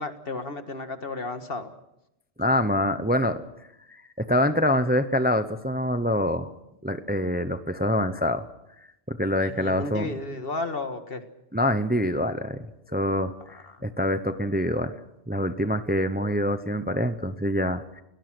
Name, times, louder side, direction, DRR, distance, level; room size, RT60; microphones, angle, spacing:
voice 1, 0.0-1.7 9.4-11.2 13.7-13.8, left 3 dB, 60° left, 8 dB, 1.9 m, -33 dB
voice 2, 2.4-3.4 3.9-6.5 6.8-8.5 9.1-10.1 11.5-15.0 15.3-18.0, left 1 dB, 10° right, 10 dB, 0.8 m, -25 dB
28.5 x 19.0 x 6.3 m, 0.85 s
omnidirectional pair, 1.1 m